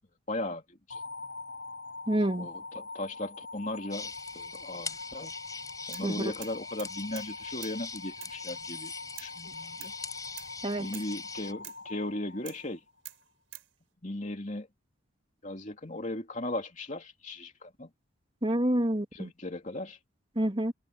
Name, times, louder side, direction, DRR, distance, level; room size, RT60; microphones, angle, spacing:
voice 1, 0.3-1.0 2.4-5.3 5.9-8.9 9.2-9.9 10.8-12.8 14.0-14.7 15.4-17.9 19.1-20.0, left 1 dB, 35° left, 2.7 m, -37 dB
sound 1, 0.9-13.1, left 3 dB, 55° left, 7.2 m, -44 dB
voice 2, 2.1-2.5 6.0-6.1 10.6-10.9 18.4-19.3 20.4-20.7, right 1 dB, 25° right, 2.5 m, -27 dB
sound 2, 3.9-11.5, left 4 dB, 15° left, 5.1 m, -42 dB
sound 3, 5.9-6.1 6.4-7.3 7.6-7.8 8.2-8.4 9.2-9.4 9.8-10.0 10.4-10.5 10.9-11.1 11.6-11.9 12.4-12.7 13.0-13.7, right 16 dB, 75° right, 5.5 m, -46 dB
head